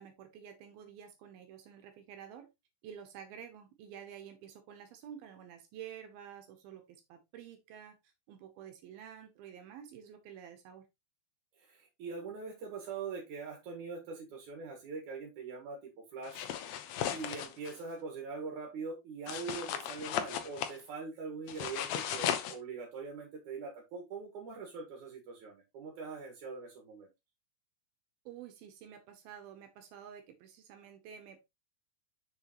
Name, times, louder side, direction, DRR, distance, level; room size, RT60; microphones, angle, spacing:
voice 1, 0.0-2.5 2.8-10.9 28.3-31.4, right 9 dB, 75° right, 7 dB, 2.7 m, -50 dB
voice 2, 11.6-16.5 17.1-27.1, right 4 dB, 55° right, 0 dB, 2.8 m, -43 dB
sound 1, 16.2-17.7 19.3-20.8 21.5-22.5, left 9 dB, 90° left, 1.5 m, -36 dB
6.8 x 6.6 x 3.0 m, 0.22 s
omnidirectional pair, 4.5 m